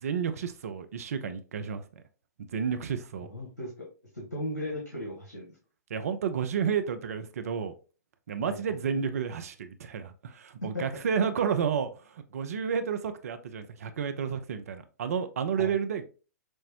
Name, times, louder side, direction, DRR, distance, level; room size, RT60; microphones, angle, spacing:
voice 1, 0.0-1.9 2.5-3.3 5.9-7.7 8.3-16.0, right 7 dB, 60° right, 0.6 m, -31 dB
voice 2, 3.3-3.9 4.1-5.4 8.4-8.8 10.7-10.8 15.6-15.7, left 1 dB, 90° left, 1.3 m, -36 dB
6.3 x 2.1 x 2.8 m
figure-of-eight pair, 115°, 9 cm